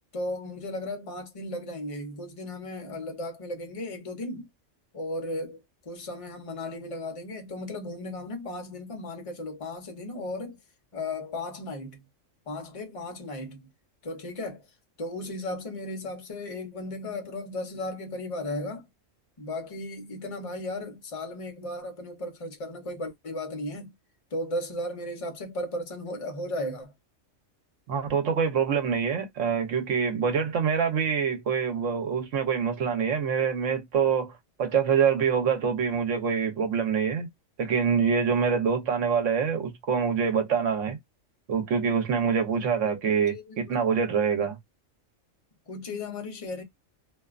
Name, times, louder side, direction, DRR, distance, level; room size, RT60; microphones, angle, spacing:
voice 1, 0.1-4.5 4.9-10.6 10.9-12.1 12.5-13.7 14.0-14.7 15.0-18.9 19.4-23.9 24.3-26.9 42.5-43.0 43.3-44.0 44.4-44.5 45.7-46.6, left 1 dB, 30° left, 0.7 m, -35 dB
voice 2, 27.9-34.3 34.6-37.3 37.6-41.0 41.5-44.6, right 6 dB, 70° right, 1.1 m, -25 dB
2.6 x 2.3 x 2.3 m
omnidirectional pair, 1.3 m